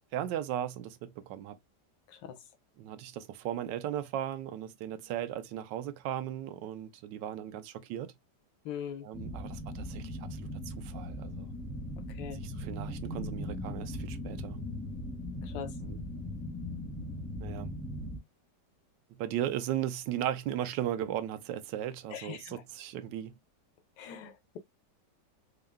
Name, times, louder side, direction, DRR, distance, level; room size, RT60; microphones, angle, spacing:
voice 1, 0.1-1.6 2.8-8.1 9.0-11.5 12.3-14.6 15.8-16.0 17.4-17.7 19.1-23.4, right 11 dB, 85° right, 1.3 m, -37 dB
voice 2, 8.6-9.1 12.2-12.4 15.4-15.7 22.1-22.5 24.0-24.6, left 9 dB, 90° left, 1.5 m, -41 dB
sound 1, 9.1-18.2, left 1 dB, 10° left, 0.6 m, -39 dB
4.4 x 2.2 x 3.5 m
omnidirectional pair, 1.9 m